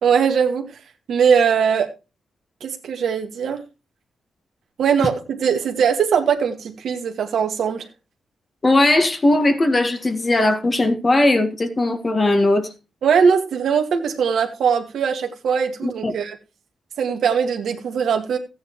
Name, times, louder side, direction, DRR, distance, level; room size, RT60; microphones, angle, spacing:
voice 1, 0.0-0.8 1.1-1.9 2.6-3.6 4.8-7.9 13.0-16.4 17.0-18.4, right 7 dB, 75° right, 1.9 m, -20 dB
voice 2, 8.6-12.7 15.8-16.1, left 2 dB, 30° left, 1.8 m, -18 dB
14.5 x 9.6 x 3.1 m
cardioid pair, 75°, 0 cm